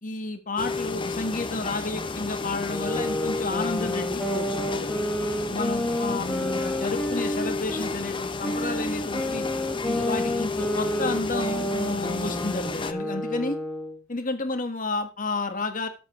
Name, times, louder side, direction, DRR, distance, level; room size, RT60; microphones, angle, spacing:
voice 1, 0.0-4.9 5.5-9.4 9.8-13.6 14.1-15.9, left 3 dB, 40° left, 7 dB, 1.6 m, -31 dB
sound 1, 0.6-12.9, left 4 dB, 25° left, 0.8 m, -31 dB
sound 2, 2.7-7.9 8.4-14.0, equal, 5° left, 1.3 m, -31 dB
13.0 x 7.9 x 3.2 m, 0.32 s
head